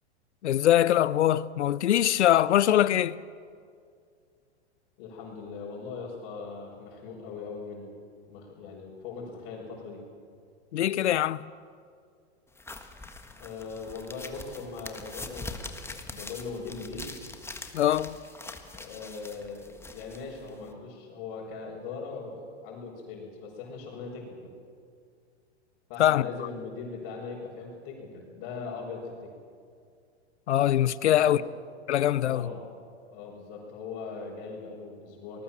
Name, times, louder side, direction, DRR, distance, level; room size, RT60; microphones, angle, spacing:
voice 1, 0.4-3.2 10.7-11.5 17.7-18.2 26.0-26.3 30.5-31.4 31.9-32.5, left 12 dB, 80° left, 0.8 m, -23 dB
voice 2, 5.0-7.9 8.3-10.0 13.4-17.1 18.7-24.5 25.9-29.3 31.0-31.5 32.2-32.7 33.1-35.4, left 4 dB, 50° left, 6.2 m, -40 dB
sound 1, 12.6-20.7, left 3 dB, 5° left, 1.6 m, -43 dB
25.0 x 20.0 x 7.5 m
hypercardioid pair, 120°, 34 cm